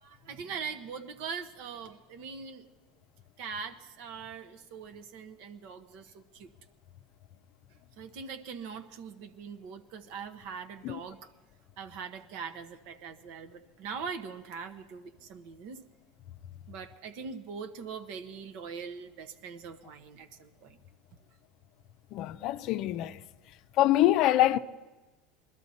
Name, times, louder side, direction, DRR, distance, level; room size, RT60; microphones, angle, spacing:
voice 1, 0.0-2.6 3.4-6.5 8.0-11.3 11.8-15.8 16.7-20.8, right 6 dB, 70° right, 1.1 m, -42 dB
voice 2, 22.1-23.2 23.8-24.6, left 14 dB, 60° left, 0.5 m, -25 dB
21.0 x 12.5 x 4.2 m
supercardioid pair, 100°, 0 cm